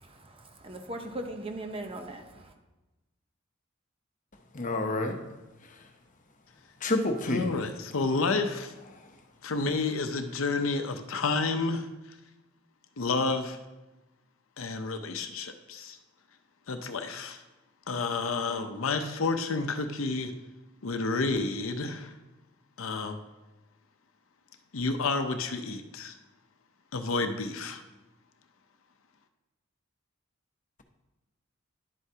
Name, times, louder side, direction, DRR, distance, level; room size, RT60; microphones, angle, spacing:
voice 1, 0.0-2.5, right 1 dB, 30° right, 5 dB, 0.8 m, -39 dB
voice 2, 4.5-5.2 5.6-5.8 6.8-7.5 8.9-9.1, left 2 dB, 40° left, 4 dB, 0.9 m, -29 dB
voice 3, 7.3-8.7 9.4-12.2 13.0-13.6 14.6-16.0 16.7-17.4 17.9-20.3 20.8-22.2 22.8-23.2 24.7-26.2 26.9-27.8, left 3 dB, 85° left, 7 dB, 0.7 m, -30 dB
11.0 x 8.0 x 2.9 m, 1.1 s
head